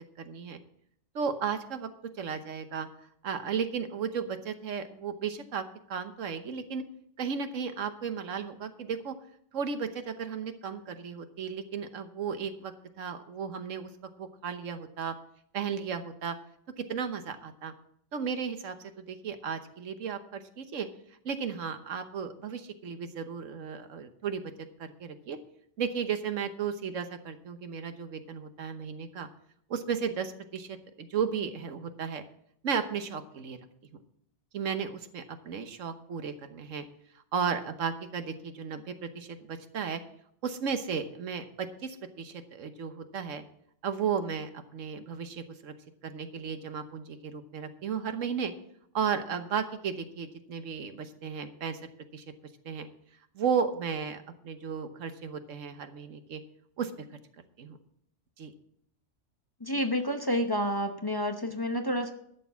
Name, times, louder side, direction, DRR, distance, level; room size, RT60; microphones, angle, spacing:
voice 1, 0.2-0.6 1.1-1.9 2.2-2.9 3.2-6.8 7.2-9.1 9.5-13.9 14.2-15.1 15.5-16.4 16.8-17.7 18.1-20.9 21.2-24.4 24.8-25.4 25.8-29.3 29.7-32.2 32.6-33.6 33.9-34.0 34.5-36.8 37.3-40.0 40.4-43.4 43.8-45.7 46.0-48.5 48.9-51.8 52.1-52.2 52.6-52.9 53.3-56.4 56.8-56.9 57.6-57.8 58.4-58.5, right 6 dB, 90° right, 9 dB, 1.4 m, -34 dB
voice 2, 59.6-62.1, equal, 20° left, 5 dB, 0.8 m, -29 dB
12.0 x 6.9 x 7.1 m, 0.69 s
omnidirectional pair, 1.3 m